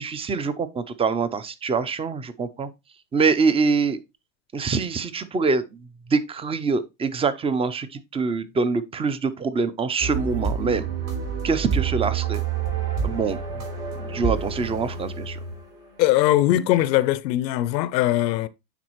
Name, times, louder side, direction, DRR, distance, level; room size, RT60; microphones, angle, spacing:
voice 1, 0.0-2.7 3.1-4.0 4.5-5.6 6.1-10.9 11.4-12.4 13.0-13.4 13.9-15.4, right 4 dB, 10° right, 0.4 m, -24 dB
sound 1, 10.0-16.1, right 6 dB, 65° right, 4.0 m, -28 dB
voice 2, 16.0-18.5, left 14 dB, 80° left, 0.7 m, -20 dB
9.3 x 4.1 x 3.0 m
hypercardioid pair, 95°, 50 cm